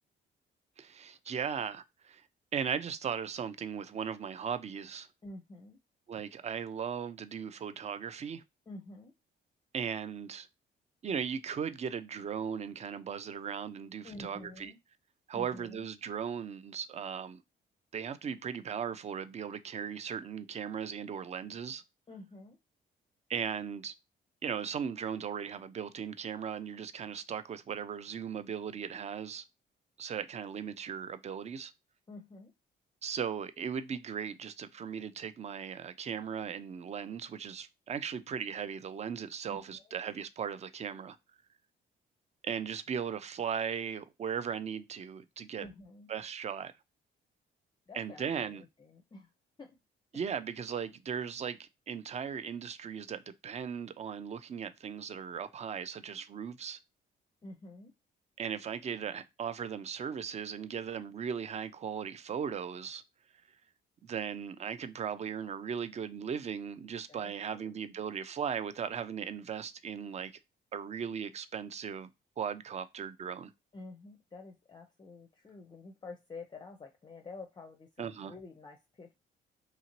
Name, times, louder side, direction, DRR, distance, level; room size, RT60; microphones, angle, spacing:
voice 1, 0.8-2.2 2.5-5.1 6.1-8.4 9.7-10.5 11.0-14.7 15.3-17.4 17.9-21.8 23.3-23.9 24.4-29.4 30.0-31.7 33.0-41.2 42.4-45.7 46.1-46.7 47.9-48.6 50.1-56.8 58.4-63.0 64.0-70.3 70.7-72.1 72.4-73.5 78.0-78.3, right 7 dB, 35° right, 0.4 m, -37 dB
voice 2, 5.2-5.8 8.7-9.1 14.0-14.8 15.3-15.8 22.1-22.6 32.1-32.5 39.5-40.0 45.6-46.1 47.9-49.3 49.6-49.8 57.4-57.9 67.1-67.7 73.7-79.1, left 3 dB, 20° left, 0.5 m, -49 dB
2.8 x 2.7 x 2.9 m
cardioid pair, 90°, 20 cm